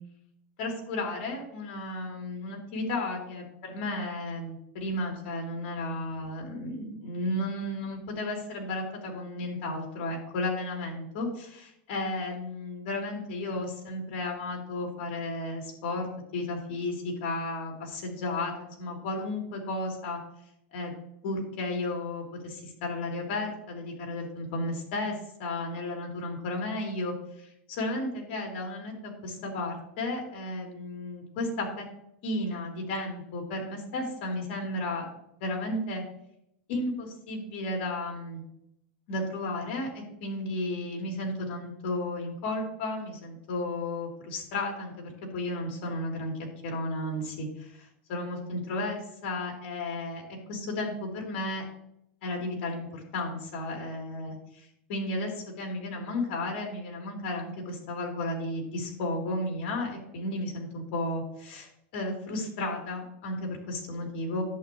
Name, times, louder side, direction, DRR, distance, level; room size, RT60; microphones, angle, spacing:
voice 1, 0.6-16.1 16.3-20.2 20.7-20.9 21.2-25.1 25.4-27.1 27.4-31.9 32.2-35.1 35.4-36.0 36.7-38.4 39.1-46.3 46.6-51.6 52.2-64.4, left 2 dB, 55° left, 1 dB, 3.6 m, -33 dB
11.0 x 8.4 x 3.2 m, 0.77 s
supercardioid pair, 160°, 6 cm